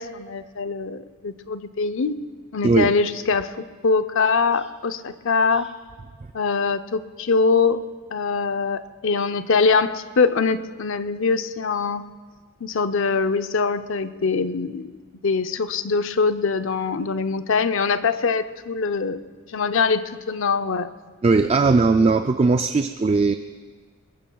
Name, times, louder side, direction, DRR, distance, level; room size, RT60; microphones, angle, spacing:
voice 1, 0.0-2.2 2.5-5.7 6.3-7.8 8.1-12.1 12.6-15.0 15.2-19.2 19.5-20.9 21.9-22.0, left 4 dB, 60° left, 10 dB, 0.6 m, -23 dB
voice 2, 21.2-23.3, right 3 dB, 25° right, 8 dB, 0.3 m, -18 dB
22.0 x 21.5 x 2.3 m, 1.5 s
head